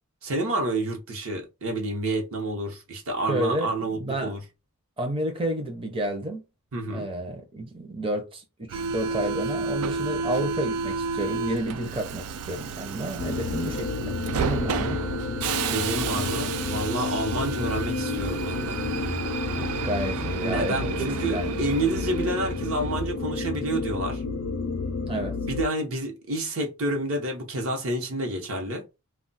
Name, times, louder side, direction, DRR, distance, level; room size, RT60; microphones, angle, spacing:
voice 1, 0.2-4.4 6.7-7.1 15.7-18.8 20.4-24.2 25.5-28.8, right 2 dB, 70° right, 0.9 m, -29 dB
voice 2, 3.3-4.3 5.0-6.4 6.9-15.0 19.5-21.6 25.0-25.4, right 1 dB, 25° right, 0.6 m, -31 dB
Subway metro underground, 8.7-23.0, right 5 dB, 90° right, 0.3 m, -32 dB
sound 1, 13.2-25.6, left 3 dB, 65° left, 0.4 m, -30 dB
2.3 x 2.2 x 3.9 m
head